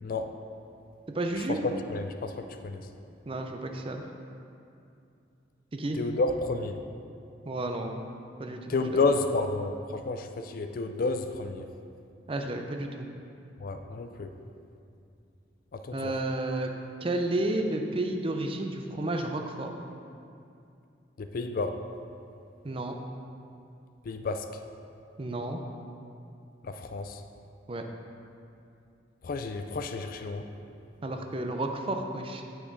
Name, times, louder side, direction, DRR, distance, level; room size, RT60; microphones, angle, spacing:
voice 1, 0.0-0.3 1.5-2.8 5.9-6.8 8.7-11.7 13.6-14.3 15.7-16.1 21.3-21.8 24.1-24.5 26.6-27.2 29.2-30.5, left 3 dB, 50° left, 7 dB, 0.4 m, -30 dB
voice 2, 1.1-1.6 3.3-4.0 5.7-6.0 7.5-8.0 8.4-9.1 12.3-13.1 15.9-16.7 17.0-19.7 22.6-22.9 25.2-25.6 27.7-27.8 31.0-32.4, right 2 dB, 30° right, 4 dB, 0.5 m, -31 dB
8.1 x 6.0 x 4.0 m, 2.5 s
head